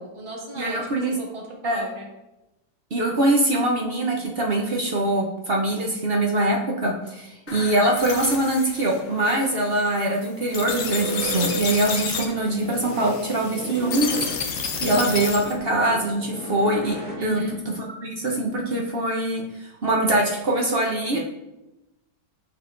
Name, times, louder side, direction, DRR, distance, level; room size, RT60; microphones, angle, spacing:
voice 1, 0.0-2.1 17.1-17.6, equal, 20° right, -2 dB, 1.0 m, -35 dB
voice 2, 0.6-1.1 1.6-1.9 2.9-17.0 17.2-17.4 17.8-21.2, right 1 dB, 55° right, -1 dB, 0.6 m, -23 dB
sound 1, 7.5-15.6, left 5 dB, 60° left, 0.9 m, -31 dB
sound 2, 10.9-17.6, right 1 dB, 5° left, 0.9 m, -35 dB
7.7 x 5.3 x 2.5 m, 0.95 s
omnidirectional pair, 2.0 m